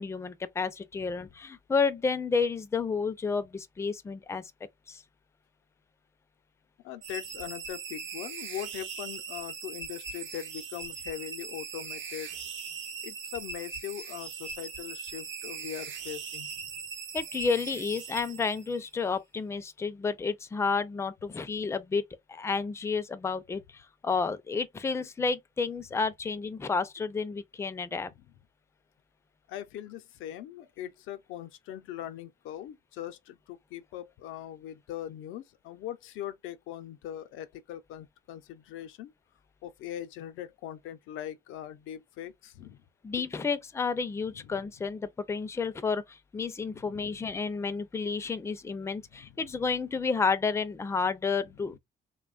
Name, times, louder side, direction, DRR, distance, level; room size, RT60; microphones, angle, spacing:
voice 1, 0.0-4.4 4.9-5.0 17.1-22.0 22.3-28.1 43.0-51.8, left 4 dB, 15° left, 0.4 m, -31 dB
voice 2, 6.8-12.4 13.0-16.7 29.5-39.1 39.6-42.8 44.4-44.5 46.7-47.2 49.1-49.4, left 11 dB, 90° left, 0.5 m, -41 dB
sound 1, 7.0-18.9, right 6 dB, 70° right, 0.8 m, -40 dB
2.9 x 2.2 x 2.3 m
cardioid pair, 90°, 20 cm